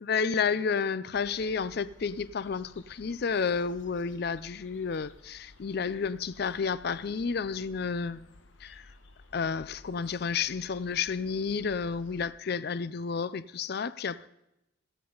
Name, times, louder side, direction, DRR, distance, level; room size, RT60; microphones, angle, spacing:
voice 1, 0.0-8.3 8.6-8.9 9.3-14.3, left 5 dB, 55° left, 0.5 m, -31 dB
sound 1, 1.1-12.3, left 2 dB, 80° left, 1.1 m, -55 dB
17.0 x 14.5 x 3.9 m
head